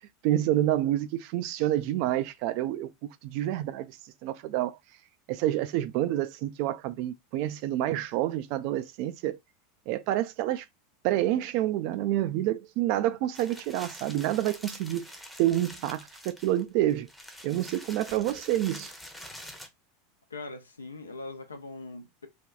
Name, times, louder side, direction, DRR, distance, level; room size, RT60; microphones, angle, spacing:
voice 1, 0.2-2.9 3.2-4.0 4.2-4.8 5.3-9.4 9.9-10.6 11.0-15.1 15.4-17.1 17.4-18.9, right 13 dB, 55° right, 0.4 m, -28 dB
sound 1, 13.3-19.7, equal, ahead, 0.7 m, -46 dB
voice 2, 20.3-22.3, left 3 dB, 85° left, 0.6 m, -41 dB
3.4 x 2.3 x 2.3 m
figure-of-eight pair, 85°, 0 cm